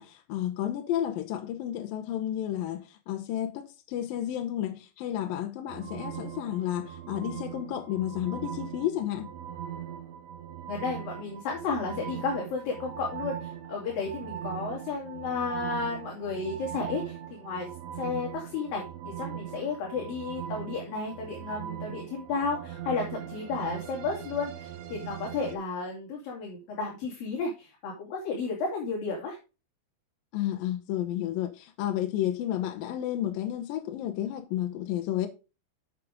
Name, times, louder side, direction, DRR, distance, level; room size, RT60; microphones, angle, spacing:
voice 1, 0.0-9.3 30.3-35.3, left 12 dB, 75° left, 2.2 m, -31 dB
sound 1, 5.7-25.6, right 10 dB, 80° right, 3.7 m, -40 dB
voice 2, 10.7-17.7 18.0-29.4, left 4 dB, 55° left, 4.3 m, -33 dB
8.9 x 7.5 x 3.7 m
omnidirectional pair, 5.3 m